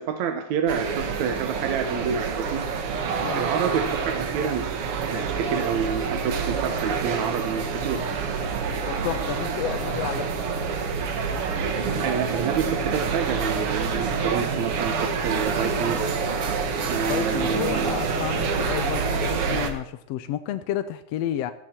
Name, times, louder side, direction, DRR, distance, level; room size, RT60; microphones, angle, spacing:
voice 1, 0.0-2.6 3.3-8.0 12.0-16.0 16.9-18.0, right 7 dB, 70° right, 5 dB, 2.3 m, -28 dB
sound 1, 0.7-19.7, right 5 dB, 55° right, 2.0 m, -27 dB
voice 2, 8.9-10.5 17.1-21.5, left 11 dB, 75° left, 10 dB, 1.6 m, -31 dB
15.0 x 14.0 x 4.4 m, 0.72 s
omnidirectional pair, 3.5 m